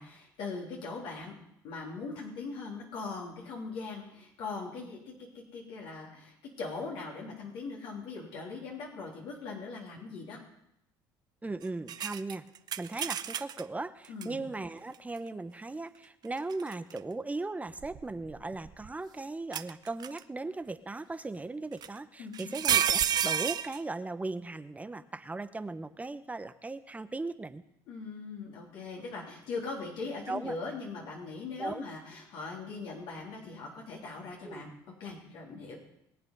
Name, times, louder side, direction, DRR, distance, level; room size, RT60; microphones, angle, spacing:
voice 1, 0.0-1.3 1.6-5.0 5.3-10.4 14.1-14.4 22.2-22.6 27.9-34.7 35.0-35.8, left 4 dB, 70° left, -2 dB, 3.3 m, -40 dB
voice 2, 11.4-12.5 12.8-27.6 30.3-30.6 31.6-31.8 34.4-34.6, right 3 dB, 15° right, 11 dB, 0.9 m, -38 dB
sound 1, 11.9-13.6 14.2-14.3 16.4-17.0 17.8-18.9 19.5-20.2 21.8-21.9 22.3-23.8, right 9 dB, 45° right, 0.6 m, -30 dB
21.5 x 8.0 x 5.4 m, 0.79 s
supercardioid pair, 80°, 9 cm